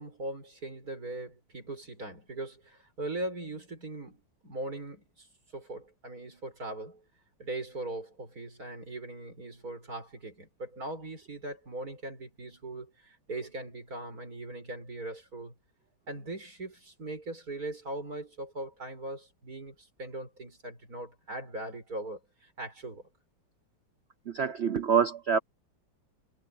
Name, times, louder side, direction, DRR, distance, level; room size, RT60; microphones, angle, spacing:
voice 1, 0.0-5.3 5.5-7.0 7.4-15.5 16.1-23.0, right 2 dB, 50° right, 6.9 m, -40 dB
voice 2, 24.3-25.4, right 7 dB, 70° right, 0.6 m, -26 dB
omnidirectional pair, 2.1 m